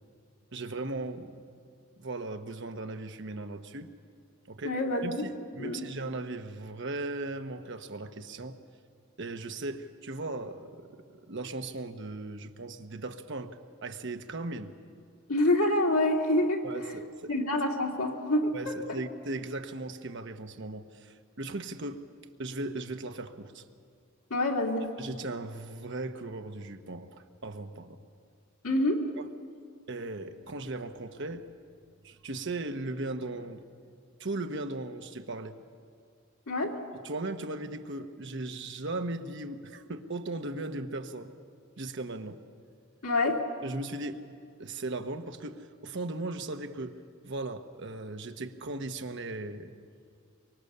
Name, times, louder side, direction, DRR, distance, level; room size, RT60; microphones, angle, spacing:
voice 1, 0.5-1.4 2.0-3.9 4.5-8.6 9.2-14.7 16.6-17.3 18.5-22.0 22.4-23.6 25.0-28.0 29.2-29.3 29.9-31.5 32.0-33.7 34.2-35.6 37.0-41.3 41.8-42.4 43.6-44.2 44.6-47.0 47.2-49.7, right 2 dB, 60° right, 7 dB, 1.1 m, -37 dB
voice 2, 4.6-5.2 5.6-5.9 15.3-16.6 17.3-18.8 24.3-24.9 28.6-29.0 36.5-36.7 43.0-43.4, left 1 dB, 85° left, 0 dB, 2.6 m, -27 dB
24.0 x 23.0 x 6.8 m, 2.2 s
head